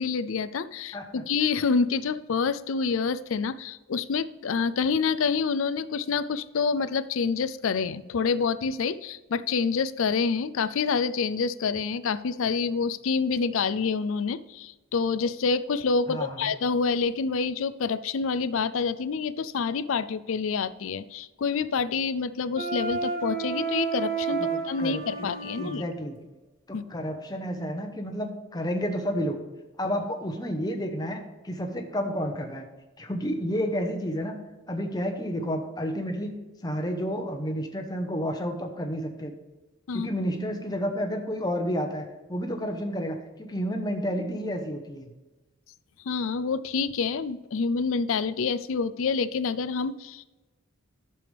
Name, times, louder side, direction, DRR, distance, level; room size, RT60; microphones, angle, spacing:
voice 1, 0.0-25.8 26.7-26.8 39.9-40.1 46.0-50.2, left 5 dB, 70° left, 14 dB, 0.4 m, -27 dB
voice 2, 16.1-16.5 24.4-26.2 26.7-29.4 29.8-32.7 33.0-34.4 34.7-39.3 39.9-45.1, equal, 20° left, 4 dB, 1.0 m, -31 dB
Wind instrument woodwind instrument, 22.6-25.8, right 5 dB, 45° right, 1.7 m, -31 dB
11.5 x 6.9 x 3.4 m, 1.1 s
head